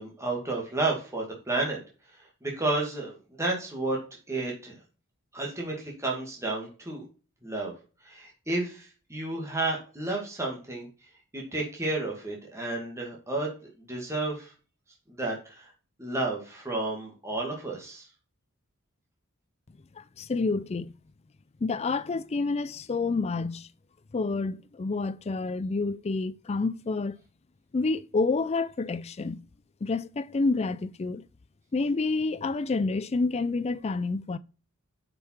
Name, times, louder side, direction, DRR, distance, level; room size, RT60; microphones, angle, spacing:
voice 1, 0.0-1.8 2.4-4.0 4.3-4.8 5.3-7.0 7.4-7.7 8.0-10.9 11.3-13.5 13.9-14.5 15.2-15.7 16.0-18.1, right 2 dB, 15° right, 2.1 m, -31 dB
voice 2, 20.0-20.9 21.6-23.7 24.1-27.2 27.7-29.4 29.8-31.2 31.7-34.4, left 3 dB, 30° left, 0.4 m, -28 dB
7.9 x 5.7 x 4.5 m
head